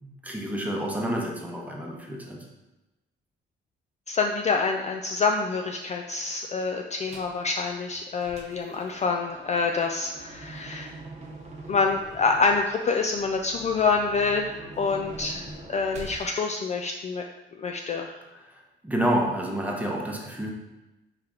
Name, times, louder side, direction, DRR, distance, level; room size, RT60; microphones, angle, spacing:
voice 1, 0.0-2.5 18.3-20.5, right 1 dB, 5° right, -1 dB, 1.0 m, -29 dB
voice 2, 4.1-10.9 11.7-17.2 17.6-18.1, left 4 dB, 35° left, 2 dB, 0.4 m, -26 dB
sound 1, 7.1-7.4 7.9-16.3, right 2 dB, 35° right, 1.0 m, -44 dB
4.8 x 2.9 x 3.7 m, 1.0 s
cardioid pair, 90°, 20 cm